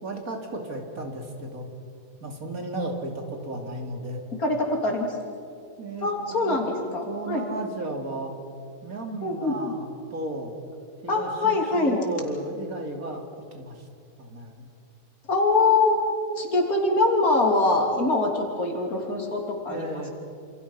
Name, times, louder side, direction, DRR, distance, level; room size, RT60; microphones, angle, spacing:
voice 1, 0.0-1.7 2.2-4.2 5.8-6.6 7.1-8.3 8.8-10.5 11.0-13.2 13.5-13.9 14.2-14.7 19.7-20.1, right 1 dB, 75° right, 3 dB, 3.2 m, -34 dB
voice 2, 4.4-5.2 6.0-7.4 9.2-9.6 11.1-12.0 15.3-16.0 16.4-20.1, left 2 dB, 80° left, 1 dB, 3.7 m, -23 dB
27.5 x 27.5 x 5.8 m, 2.4 s
omnidirectional pair, 1.5 m